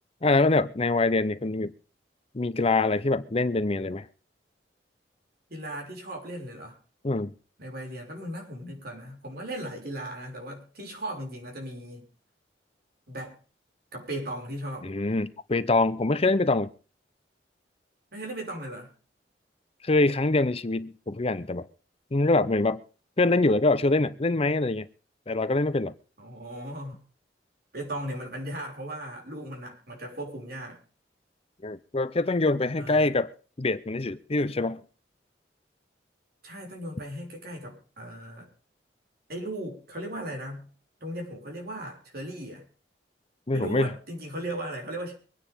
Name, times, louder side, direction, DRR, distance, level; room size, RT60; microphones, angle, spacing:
voice 1, 0.2-1.7 2.3-4.1 7.0-7.3 14.8-16.7 19.8-21.7 22.1-22.8 23.2-24.9 25.3-25.9 31.6-33.3 33.6-34.8 43.5-43.9, left 2 dB, 35° left, 0.7 m, -24 dB
voice 2, 5.5-6.8 7.6-12.1 13.1-13.4 13.9-14.9 18.1-18.9 26.2-27.0 27.7-30.8 32.8-33.2 36.4-38.5 39.3-40.7 41.0-42.6 43.5-45.1, right 1 dB, 60° right, 6.1 m, -37 dB
24.0 x 9.9 x 3.6 m
head